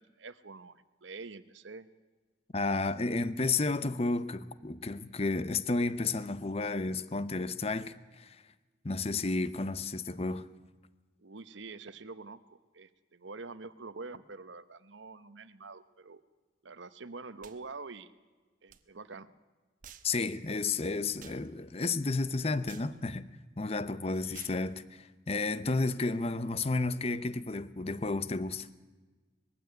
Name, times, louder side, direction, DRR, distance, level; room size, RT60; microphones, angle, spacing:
voice 1, 0.0-1.9 11.2-16.2 16.6-18.1 18.6-19.3 24.2-24.4, right 3 dB, 80° right, 1.0 m, -46 dB
voice 2, 2.5-8.4 8.8-10.4 20.0-23.3 23.6-28.7, left 3 dB, 30° left, 0.7 m, -32 dB
sound 1, 17.4-17.6 18.7-18.8 19.8-20.1 21.2-21.4 22.7-22.9 24.3-24.6, right 9 dB, 45° right, 1.0 m, -51 dB
21.0 x 15.5 x 9.4 m
head